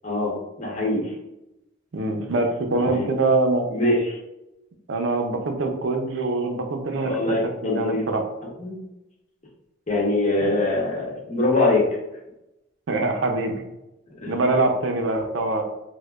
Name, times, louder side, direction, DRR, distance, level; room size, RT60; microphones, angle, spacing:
voice 1, 0.6-1.1 2.9-3.0 3.7-4.2 7.0-8.0 8.6-8.8 9.9-11.8 14.2-14.3, left 2 dB, 35° left, -3 dB, 0.9 m, -23 dB
voice 2, 1.9-3.7 4.9-7.4 7.6-8.2 10.4-10.5 12.9-13.6 14.3-15.6, right 2 dB, 65° right, 4 dB, 0.5 m, -24 dB
4.6 x 2.1 x 2.3 m, 0.91 s
head